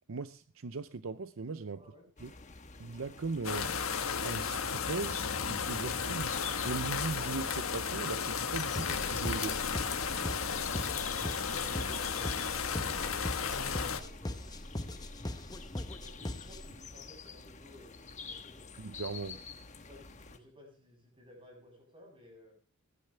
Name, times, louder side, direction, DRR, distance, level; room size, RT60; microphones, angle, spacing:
voice 1, 0.1-1.8 2.2-2.3 2.8-3.7 4.2-6.4 6.6-9.6 18.8-19.4, right 4 dB, 65° right, 0.6 m, -39 dB
sound 1, 2.2-20.4, left 6 dB, 30° left, 1.2 m, -48 dB
sound 2, 3.4-14.0, left 6 dB, 70° left, 1.4 m, -34 dB
sound 3, 8.8-16.8, left 1 dB, 15° left, 0.8 m, -40 dB
voice 2, 11.2-15.1 16.0-18.7 19.9-22.6, left 1 dB, 25° right, 7.6 m, -55 dB
20.5 x 11.5 x 3.3 m
head